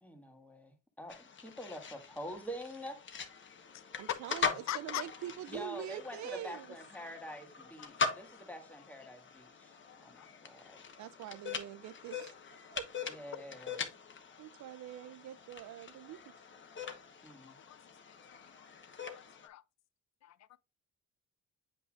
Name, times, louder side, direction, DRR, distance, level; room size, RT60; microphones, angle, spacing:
voice 1, 0.0-3.0 5.5-10.8 13.1-13.9 17.2-17.6, equal, 5° left, 1.7 m, -46 dB
sound 1, 1.1-19.5, left 5 dB, 40° left, 1.1 m, -42 dB
voice 2, 4.0-6.7 11.0-12.3 12.7-12.9 14.4-16.2, right 12 dB, 70° right, 0.5 m, -44 dB
voice 3, 4.7-5.1 7.8-7.9 10.2-10.3 17.4-17.8 18.3-18.7 19.1-19.6 20.2-20.4, left 13 dB, 60° left, 0.6 m, -42 dB
8.1 x 5.5 x 2.5 m
cardioid pair, 90°, 30 cm